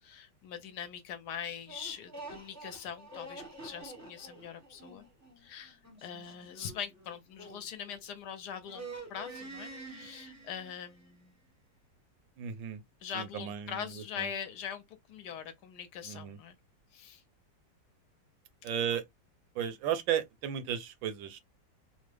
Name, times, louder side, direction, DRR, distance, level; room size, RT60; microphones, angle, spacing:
voice 1, 0.0-5.0 5.4-11.3 13.0-16.6 16.9-17.2, left 8 dB, 70° left, 1.1 m, -42 dB
sound 1, 1.7-8.3 8.6-11.1, right 2 dB, 15° right, 0.6 m, -48 dB
voice 2, 12.4-12.8 13.1-14.3 16.0-16.4 18.6-19.0 19.5-21.4, right 9 dB, 90° right, 1.4 m, -34 dB
3.5 x 2.1 x 3.2 m
omnidirectional pair, 2.0 m